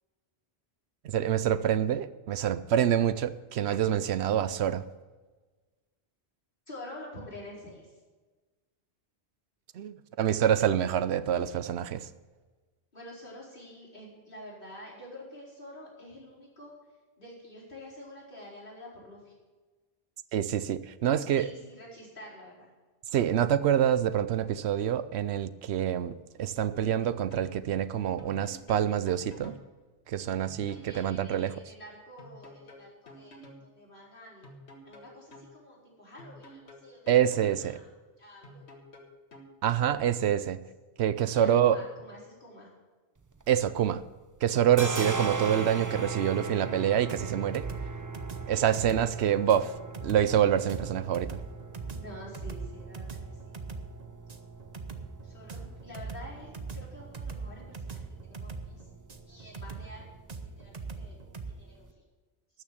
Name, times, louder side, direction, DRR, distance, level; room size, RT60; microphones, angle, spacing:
voice 1, 1.0-4.8 9.7-12.1 20.3-21.5 23.1-29.6 30.1-31.5 37.1-37.8 39.6-40.6 41.0-41.8 43.5-44.0 44.4-47.7 48.5-49.7 50.0-51.4, right 10 dB, 80° right, 0.9 m, -26 dB
voice 2, 6.7-7.9 12.9-16.7 17.2-19.3 21.3-22.7 30.7-34.5 34.8-37.1 37.6-37.9 38.2-38.6 41.3-42.7 48.4-48.6 51.9-53.2 53.4-53.6 55.2-58.9 59.3-60.1 60.4-61.2 61.5-61.9, left 1 dB, 50° left, 4.8 m, -48 dB
sound 1, 26.7-27.5 28.2-29.6 30.4-31.5 32.2-33.6 34.4-35.5 36.2-37.6 38.4-39.5, equal, 80° left, 2.0 m, -50 dB
sound 2, 43.2-44.1 44.4-61.9, right 3 dB, 25° right, 0.5 m, -40 dB
sound 3, 47.1-61.5, right 4 dB, 40° right, 1.0 m, -41 dB
13.0 x 6.5 x 8.3 m
omnidirectional pair, 1.1 m